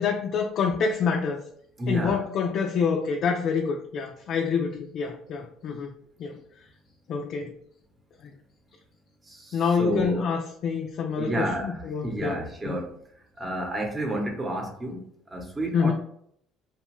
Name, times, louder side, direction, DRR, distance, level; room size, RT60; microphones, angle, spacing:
voice 1, 0.0-1.4 1.9-5.9 6.2-6.4 7.1-7.6 8.2-8.3 9.5-12.4 12.7-12.8 15.7-15.9, left 5 dB, 60° left, 2 dB, 0.3 m, -27 dB
voice 2, 1.8-2.2 9.2-10.2 11.2-13.0 13.4-15.9, right 1 dB, 20° right, 2 dB, 0.8 m, -31 dB
2.8 x 2.2 x 3.0 m, 0.67 s
supercardioid pair, 95°, 0 cm